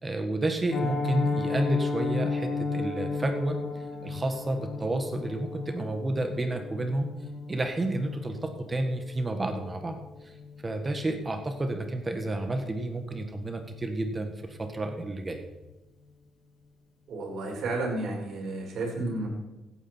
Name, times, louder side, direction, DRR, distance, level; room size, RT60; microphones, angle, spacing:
voice 1, 0.0-3.6 4.0-7.1 7.5-10.0 10.2-10.3 10.6-15.4, right 2 dB, 25° right, 5 dB, 1.6 m, -30 dB
Piano, 0.7-11.6 11.9-12.1 12.4-12.6 12.9-13.2 13.5-13.6, left 4 dB, 65° left, 2.2 m, -34 dB
voice 2, 17.1-19.3, right 2 dB, 65° right, -1 dB, 5.0 m, -32 dB
16.0 x 9.2 x 4.5 m, 1.0 s
cardioid pair, 90°, 0 cm